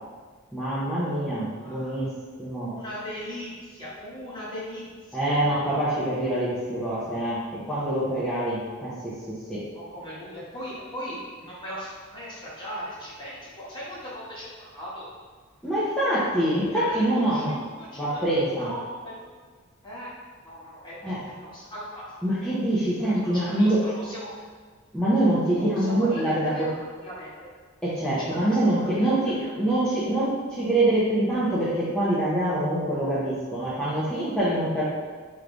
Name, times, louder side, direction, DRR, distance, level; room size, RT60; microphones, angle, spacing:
voice 1, 0.5-2.1 2.4-2.7 5.1-9.6 15.6-17.6 18.0-18.7 21.0-21.2 22.2-23.8 24.9-26.7 27.8-34.8, right 1 dB, 5° left, -12 dB, 0.7 m, -25 dB
voice 2, 1.6-2.0 2.6-5.3 9.7-15.1 16.7-17.0 17.3-19.3 19.8-20.1 20.4-21.1 21.4-22.0 23.0-24.3 25.7-26.7 27.0-27.5 28.5-28.6 28.9-29.1 29.4-29.5, equal, 25° left, -8 dB, 1.3 m, -39 dB
3.4 x 3.2 x 3.8 m, 1.5 s
head